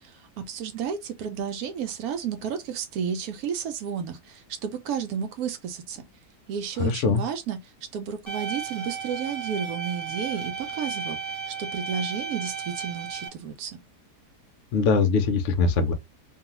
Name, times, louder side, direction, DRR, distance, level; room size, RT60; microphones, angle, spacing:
voice 1, 0.0-6.0 6.5-7.6 7.9-13.8, right 7 dB, 70° right, 1.0 m, -32 dB
voice 2, 6.8-7.2 14.7-15.9, left 4 dB, 70° left, 0.7 m, -22 dB
sound 1, 8.3-13.3, right 6 dB, 25° left, 0.7 m, -34 dB
2.6 x 2.3 x 2.9 m
omnidirectional pair, 1.7 m